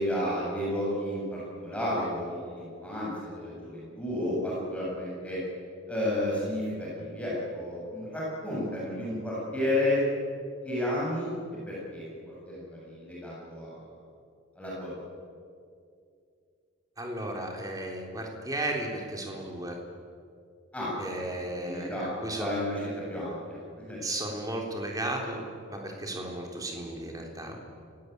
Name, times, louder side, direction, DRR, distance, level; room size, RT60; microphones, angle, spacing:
voice 1, 0.0-5.4 5.9-10.0 10.6-11.3 11.7-12.2 12.4-13.7 14.6-14.9 20.7-21.3 21.6-22.1 22.4-24.0, left 1 dB, 5° left, -6 dB, 7.8 m, -32 dB
voice 2, 17.0-19.8 21.0-22.5 24.0-27.6, right 1 dB, 15° right, 1 dB, 3.6 m, -34 dB
29.5 x 17.5 x 9.5 m, 2.4 s
head